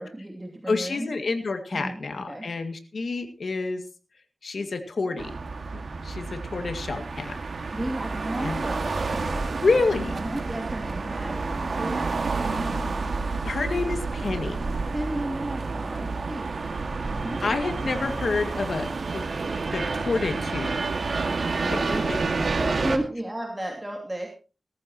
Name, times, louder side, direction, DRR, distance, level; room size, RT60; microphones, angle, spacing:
voice 1, 0.0-1.1 1.7-2.5 7.7-9.5 10.1-12.7 14.9-16.5 17.1-17.4 21.6-22.1 22.6-24.3, right 1 dB, 15° right, 1 dB, 2.7 m, -33 dB
voice 2, 0.7-3.8 4.4-5.3 6.0-7.4 8.4-8.6 9.6-10.2 13.4-14.6 17.4-19.2 19.7-20.8 21.7-21.8 22.1-22.2, left 3 dB, 75° left, 7 dB, 2.1 m, -28 dB
sound 1, 5.2-23.0, right 3 dB, 70° right, 2.0 m, -29 dB
18.5 x 14.0 x 3.0 m, 0.33 s
wide cardioid pair, 75°, 0 cm